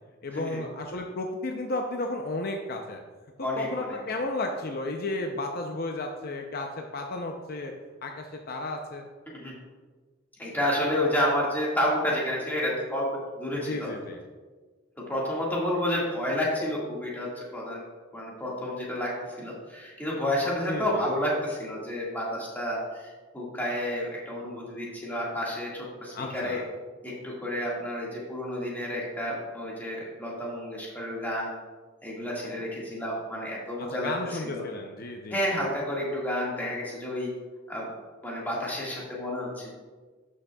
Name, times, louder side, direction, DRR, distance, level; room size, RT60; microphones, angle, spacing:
voice 1, 0.2-3.0 3.6-7.7 8.0-9.1 13.5-14.2 20.7-21.0 26.1-26.6 33.8-35.6, left 2 dB, 50° left, 3 dB, 0.6 m, -33 dB
voice 2, 3.4-4.0 9.3-9.5 10.4-13.1 13.4-13.9 15.0-17.8 18.1-19.1 19.4-26.6 27.0-31.5 32.0-34.6 35.3-37.3 37.7-37.9 38.2-39.7, left 1 dB, 10° left, -5 dB, 1.8 m, -30 dB
11.5 x 6.3 x 2.3 m, 1.4 s
head